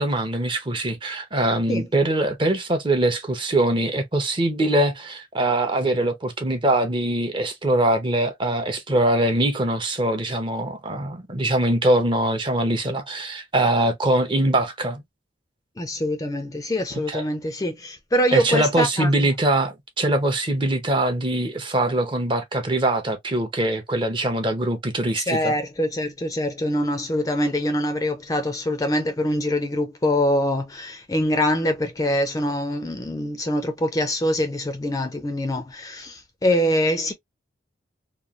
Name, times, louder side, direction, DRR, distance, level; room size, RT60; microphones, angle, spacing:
voice 1, 0.0-15.0 16.9-17.2 18.3-25.5, right 1 dB, 25° right, 0.6 m, -22 dB
voice 2, 15.8-19.3 25.2-37.1, left 1 dB, 20° left, 0.4 m, -24 dB
3.0 x 2.2 x 2.4 m
head